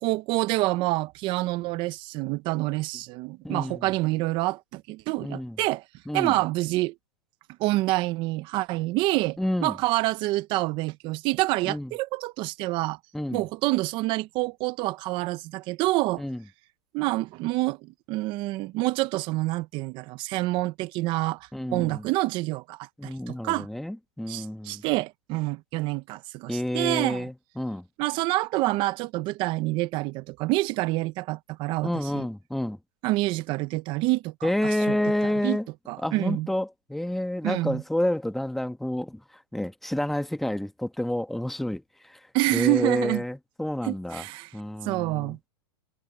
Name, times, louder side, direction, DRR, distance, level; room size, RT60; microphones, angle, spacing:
voice 1, 0.0-5.8 6.1-6.9 7.6-13.0 13.3-16.2 16.9-23.7 24.3-27.3 28.0-31.9 32.1-32.3 33.0-35.0 35.4-35.6 35.9-36.5 37.4-37.8 42.3-43.2 43.8-44.5 44.8-45.4, right 20 dB, 35° right, 0.7 m, -27 dB
voice 2, 3.4-3.8 5.2-5.6 6.1-6.3 9.4-9.8 11.6-11.9 13.1-13.4 16.2-16.4 21.5-22.0 23.0-24.8 26.5-27.9 31.8-32.8 34.4-35.7 36.0-42.2 42.5-44.2 44.5-45.5, left 1 dB, ahead, 1.2 m, -29 dB
supercardioid pair, 145°, 14 cm